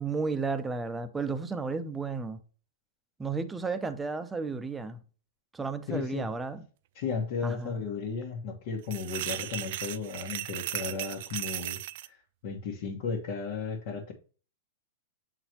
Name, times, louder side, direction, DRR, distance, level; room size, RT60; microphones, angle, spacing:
voice 1, 0.0-2.4 3.2-5.0 5.5-6.6 7.4-7.7, right 4 dB, 10° right, 0.7 m, -33 dB
voice 2, 5.9-6.3 6.9-14.1, left 5 dB, 55° left, 1.4 m, -35 dB
sound 1, 8.8-12.1, right 14 dB, 60° right, 0.4 m, -36 dB
7.7 x 4.0 x 3.0 m
hypercardioid pair, 130°, 0 cm